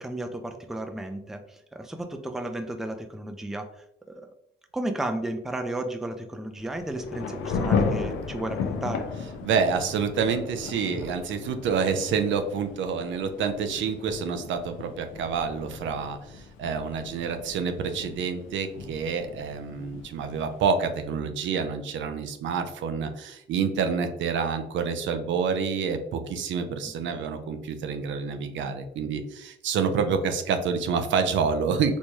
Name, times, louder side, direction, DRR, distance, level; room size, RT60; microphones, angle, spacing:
voice 1, 0.0-4.3 4.7-9.1 27.0-27.1, right 1 dB, ahead, 7 dB, 0.4 m, -33 dB
Thunder / Rain, 6.6-21.0, left 5 dB, 80° left, 0.6 m, -35 dB
voice 2, 9.4-32.0, right 6 dB, 70° right, 7 dB, 0.5 m, -28 dB
4.3 x 2.2 x 3.0 m, 0.77 s
cardioid pair, 90°, 20 cm